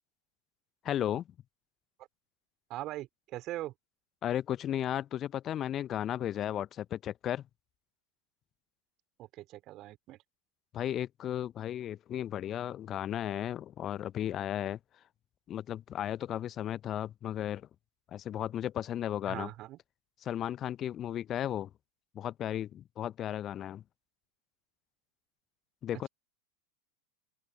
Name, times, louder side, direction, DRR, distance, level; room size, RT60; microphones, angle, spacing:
voice 1, 0.8-1.3 4.2-7.5 10.7-14.8 15.5-17.7 18.1-19.5 20.2-21.7 22.1-23.8 25.8-26.1, left 11 dB, 30° left, 0.9 m, -34 dB
voice 2, 2.7-3.7 9.2-10.2 19.3-19.8, right 16 dB, 35° right, 4.0 m, -41 dB
open air
figure-of-eight pair, 90°, 0 cm